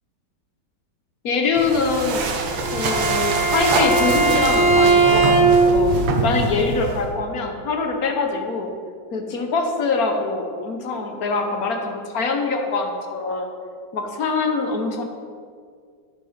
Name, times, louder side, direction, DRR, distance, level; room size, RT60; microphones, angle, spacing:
voice 1, 1.2-2.3 2.7-5.9 6.2-8.7 9.1-13.5 13.9-15.0, left 4 dB, 55° left, 3 dB, 1.2 m, -24 dB
sound 1, 1.5-7.1, right 3 dB, 70° right, 1.7 m, -25 dB
Bowed string instrument, 2.4-5.8, right 3 dB, 90° right, 2.6 m, -18 dB
10.5 x 7.0 x 5.0 m, 2.1 s
omnidirectional pair, 2.3 m